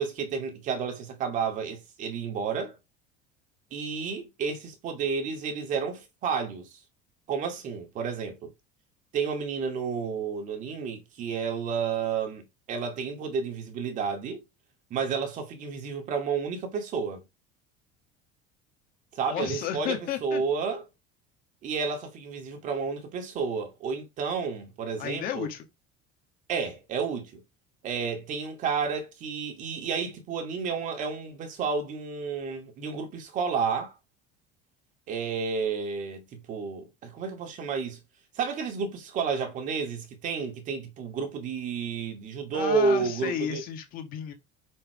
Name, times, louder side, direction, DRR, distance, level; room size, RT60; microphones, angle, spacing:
voice 1, 0.0-2.8 3.7-6.7 7.3-8.5 9.1-12.4 12.7-14.4 14.9-17.2 19.1-20.8 21.6-25.5 26.5-27.4 27.8-33.9 35.1-38.0 38.3-43.6, right 5 dB, 40° right, 2.5 m, -31 dB
voice 2, 19.3-20.4 25.0-25.6 42.5-44.3, left 9 dB, 50° left, 2.0 m, -33 dB
6.4 x 6.0 x 5.0 m
cardioid pair, 160°, 19 cm